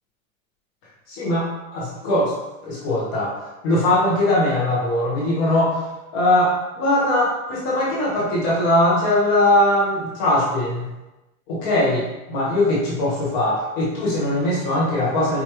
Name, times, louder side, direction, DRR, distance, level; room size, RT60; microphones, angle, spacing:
voice 1, 1.1-2.3 2.6-3.3 3.6-5.9 6.1-10.9 11.5-15.4, left 1 dB, 20° left, -6 dB, 0.4 m, -20 dB
4.6 x 2.2 x 2.8 m, 1.0 s
supercardioid pair, 165°, 42 cm